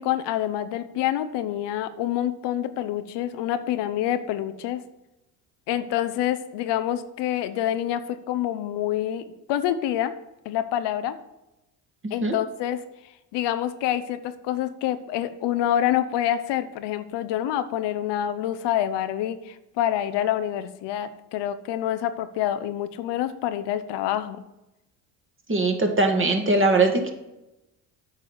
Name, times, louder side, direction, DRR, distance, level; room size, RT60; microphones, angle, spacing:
voice 1, 0.0-4.8 5.7-10.1 10.4-11.2 12.1-12.8 13.3-24.4, left 11 dB, 65° left, 11 dB, 0.8 m, -27 dB
voice 2, 25.5-27.1, right 2 dB, 25° right, 4 dB, 2.0 m, -21 dB
8.7 x 4.8 x 7.4 m, 0.94 s
hypercardioid pair, 70°, 45 cm